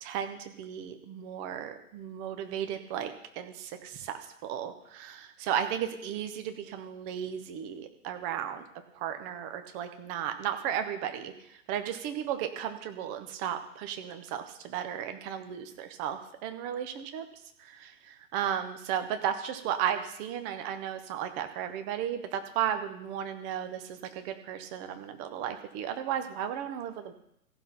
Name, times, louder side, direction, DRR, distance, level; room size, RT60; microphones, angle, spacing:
voice 1, 0.0-3.9 4.5-8.6 9.0-11.3 11.7-17.2 17.8-17.9 18.3-27.1, right 9 dB, 15° right, 8 dB, 0.7 m, -34 dB
15.0 x 6.0 x 5.8 m, 0.77 s
figure-of-eight pair, 125°, 45 cm